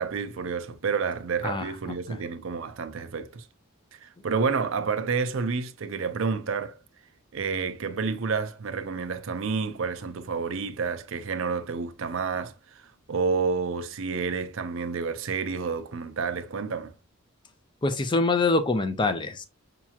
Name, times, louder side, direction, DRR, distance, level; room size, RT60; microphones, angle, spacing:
voice 1, 0.0-3.5 3.9-6.8 7.3-16.9, right 5 dB, 65° right, 0.5 m, -29 dB
voice 2, 17.8-19.5, left 3 dB, 20° left, 0.5 m, -25 dB
5.9 x 2.9 x 2.3 m
head